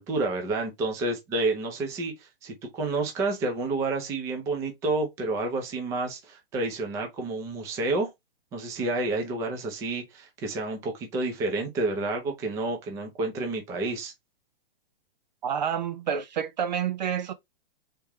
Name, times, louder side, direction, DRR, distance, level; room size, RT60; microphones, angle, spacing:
voice 1, 0.0-8.1 8.5-14.1, right 2 dB, 10° right, 0.7 m, -29 dB
voice 2, 15.4-17.3, right 8 dB, 50° right, 0.6 m, -28 dB
3.6 x 3.3 x 4.2 m
hypercardioid pair, 170°, 29 cm